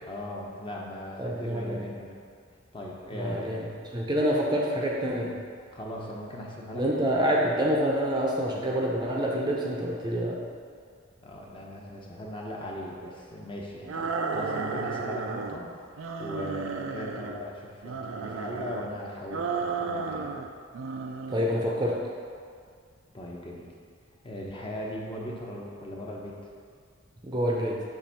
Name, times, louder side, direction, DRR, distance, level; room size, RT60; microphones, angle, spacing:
voice 1, 0.0-2.2 2.7-3.7 5.7-6.9 11.2-15.7 16.2-20.3 23.1-23.7 24.2-26.4, left 1 dB, 25° left, -3 dB, 0.8 m, -38 dB
voice 2, 1.2-1.8 3.1-3.7 3.9-5.4 6.7-10.4 21.3-22.0 27.2-27.8, equal, 20° right, -3 dB, 0.6 m, -27 dB
sound 1, 13.9-15.6 16.0-17.4 17.8-18.9 19.3-20.5 20.7-21.5, right 4 dB, 70° right, 0.4 m, -33 dB
7.2 x 2.6 x 5.6 m, 2.1 s
head